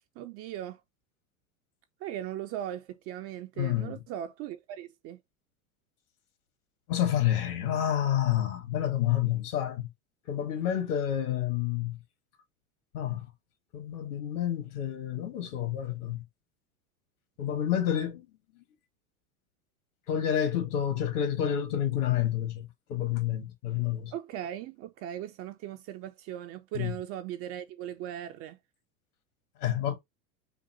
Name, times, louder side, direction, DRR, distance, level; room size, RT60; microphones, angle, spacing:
voice 1, 0.2-0.8 2.0-5.2 24.1-28.6, right 11 dB, 30° right, 0.4 m, -38 dB
voice 2, 3.6-4.0 6.9-9.9 10.3-12.0 12.9-13.3 13.7-16.2 17.4-18.3 20.1-24.1 26.8-26.9 29.6-30.0, left 10 dB, 65° left, 1.8 m, -29 dB
5.6 x 2.1 x 4.1 m
hypercardioid pair, 95°, 50 cm